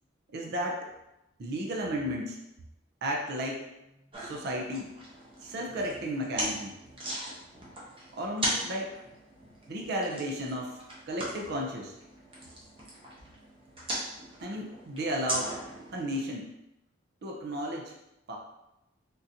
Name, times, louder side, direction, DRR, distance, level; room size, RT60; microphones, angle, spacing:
voice 1, 0.3-0.9 1.4-2.4 3.0-3.6 4.2-4.9 5.4-6.7 8.1-8.9 9.7-10.8 11.1-11.9 14.4-15.6 15.9-16.5 17.2-17.9 18.3-18.4, equal, 55° right, 0 dB, 0.5 m, -33 dB
sound 1, 4.1-16.1, right 1 dB, 30° right, 0.9 m, -39 dB
3.7 x 2.5 x 2.7 m, 0.89 s
head